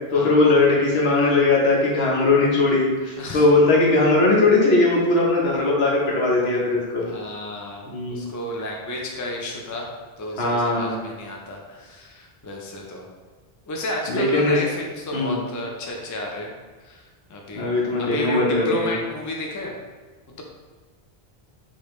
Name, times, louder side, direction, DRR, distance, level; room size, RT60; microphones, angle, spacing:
voice 1, 0.1-7.1 7.9-8.3 10.4-10.9 14.1-14.6 15.1-15.4 17.5-18.9, left 2 dB, 80° left, -4 dB, 1.2 m, -19 dB
voice 2, 7.0-9.9 10.2-13.1 13.7-16.5 16.8-17.7 18.0-19.8, left 1 dB, 25° left, 0 dB, 0.4 m, -32 dB
4.9 x 2.8 x 3.1 m, 1.4 s
omnidirectional pair, 1.0 m